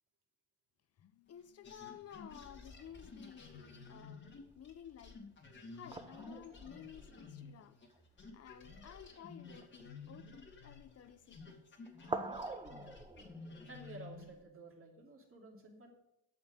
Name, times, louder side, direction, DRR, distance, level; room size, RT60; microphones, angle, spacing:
voice 1, 1.0-5.2 5.7-7.8 8.3-11.7, left 9 dB, 55° left, 0.8 m, -54 dB
sound 1, 1.6-7.9 8.2-14.4, left 4 dB, 40° left, 2.1 m, -53 dB
sound 2, 2.7-3.8 5.9-8.2 9.0-9.2 9.5-10.2 11.1-11.5 11.9-13.7, right 3 dB, 15° right, 0.9 m, -46 dB
voice 2, 13.7-15.9, right 3 dB, 45° right, 2.7 m, -53 dB
8.8 x 5.9 x 7.5 m
cardioid pair, 90°, 30 cm